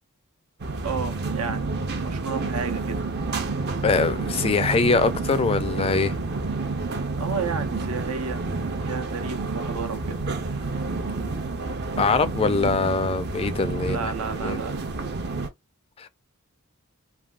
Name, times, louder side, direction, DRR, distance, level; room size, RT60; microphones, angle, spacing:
sound 1, 0.6-15.5, right 3 dB, 50° right, 0.6 m, -29 dB
voice 1, 0.7-1.7 2.0-3.0 7.2-8.6 8.8-10.2 13.8-15.1, right 5 dB, 90° right, 0.7 m, -32 dB
voice 2, 3.8-6.1 12.0-14.1 14.4-14.6 16.0-16.1, left 4 dB, 25° left, 0.3 m, -23 dB
3.2 x 2.3 x 2.3 m
head